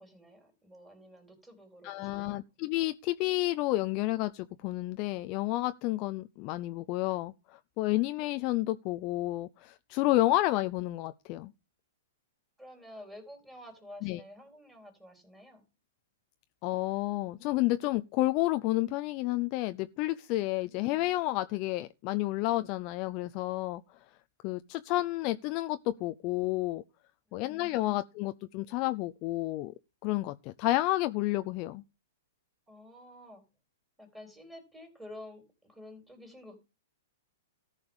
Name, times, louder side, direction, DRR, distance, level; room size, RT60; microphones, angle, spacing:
voice 1, 0.0-2.4 12.6-15.6 20.7-21.1 27.3-27.9 32.7-33.4 34.0-36.5, left 1 dB, 5° right, 3.9 m, -50 dB
voice 2, 1.8-11.5 14.0-14.2 16.6-23.8 24.4-26.8 27.3-29.7 30.0-31.8, left 17 dB, 35° left, 0.5 m, -30 dB
14.0 x 4.9 x 7.1 m
hypercardioid pair, 155°, 0 cm